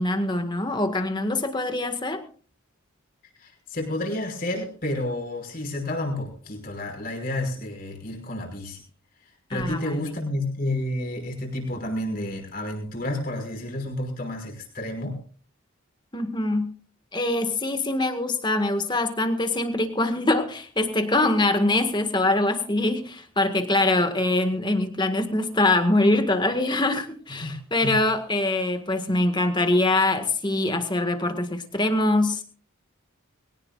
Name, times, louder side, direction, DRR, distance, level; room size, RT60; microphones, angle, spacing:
voice 1, 0.0-2.2 9.5-10.0 16.1-16.8 17.1-32.4, left 2 dB, 20° left, 7 dB, 1.8 m, -23 dB
voice 2, 3.4-8.8 9.5-15.2 27.4-27.5 27.8-28.0, left 1 dB, 45° left, 2 dB, 5.5 m, -30 dB
22.5 x 18.0 x 2.5 m, 0.40 s
head